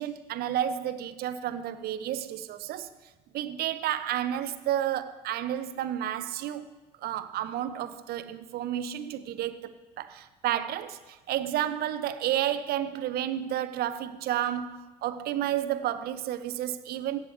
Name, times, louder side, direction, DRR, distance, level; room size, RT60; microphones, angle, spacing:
voice 1, 0.0-2.9 3.3-6.7 7.0-17.2, right 11 dB, 50° right, 0.7 m, -31 dB
16.0 x 8.8 x 3.2 m
hypercardioid pair, 60°, 20 cm